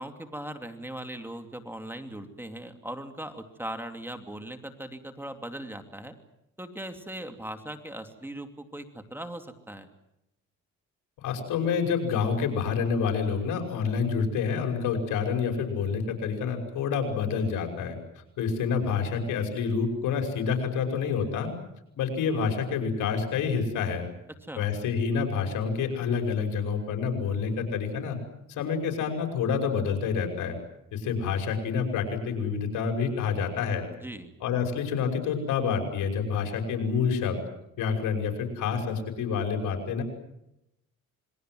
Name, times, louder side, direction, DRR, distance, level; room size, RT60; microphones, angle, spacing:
voice 1, 0.0-6.2 6.6-9.9 24.4-24.7 34.0-34.3, right 1 dB, 5° right, 7 dB, 2.7 m, -39 dB
voice 2, 11.2-18.0 18.4-21.5 22.0-24.1 24.6-28.2 28.5-30.6 30.9-33.9 34.4-37.4 37.8-40.0, left 6 dB, 85° left, 5 dB, 5.8 m, -28 dB
27.5 x 22.0 x 7.8 m, 0.86 s
cardioid pair, 90°, 30 cm